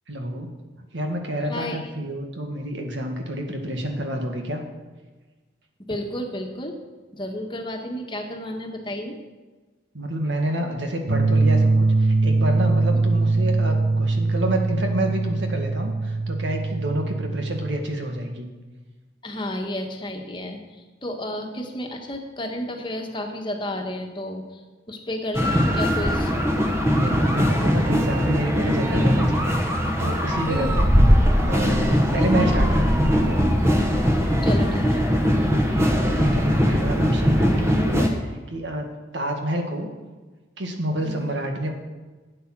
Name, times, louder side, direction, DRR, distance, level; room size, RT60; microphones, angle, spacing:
voice 1, 0.1-0.5 0.8-4.6 9.9-18.5 26.9-30.9 31.4-33.4 35.9-39.9 40.6-41.7, right 1 dB, 75° right, 3 dB, 1.9 m, -29 dB
voice 2, 1.5-1.8 5.9-6.8 7.1-9.1 19.2-24.6 24.9-26.3 30.5-30.8 32.2-32.3 34.4-35.1 41.0-41.3, left 1 dB, 25° left, 2 dB, 1.5 m, -31 dB
sound 1, 11.1-17.7, right 3 dB, 90° right, 1.0 m, -22 dB
sound 2, 25.3-38.1, equal, 15° right, 1.2 m, -20 dB
13.0 x 8.8 x 6.1 m, 1.3 s
head